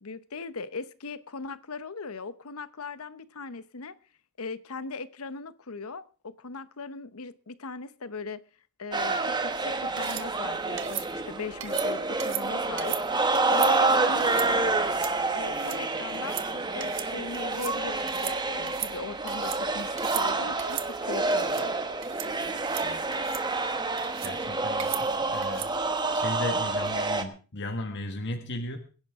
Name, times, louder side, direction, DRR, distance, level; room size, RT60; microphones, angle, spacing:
voice 1, 0.0-3.9 4.4-8.4 8.8-14.8 15.3-21.8, left 4 dB, 90° left, 14 dB, 0.9 m, -39 dB
sound 1, 8.9-27.2, right 3 dB, 20° right, 1.2 m, -28 dB
sound 2, 10.0-10.3 10.8-11.1 11.6-11.9 12.2-12.4 12.8-13.0 13.3-13.7 14.2-14.5 14.8-15.1 15.4-15.8 16.1-16.5 16.8-17.1 17.3-17.7 18.1-18.4 18.7-19.6 20.0-20.3 20.6-20.9 21.3-21.6 22.0-22.3 22.6-22.8 23.1-23.4 24.0-24.3 24.8-25.0 25.4-25.7, right 13 dB, 60° right, 1.1 m, -37 dB
voice 2, 24.2-25.7 26.1-28.8, left 1 dB, 55° left, 5 dB, 1.6 m, -36 dB
23.0 x 10.5 x 3.6 m, 0.36 s
head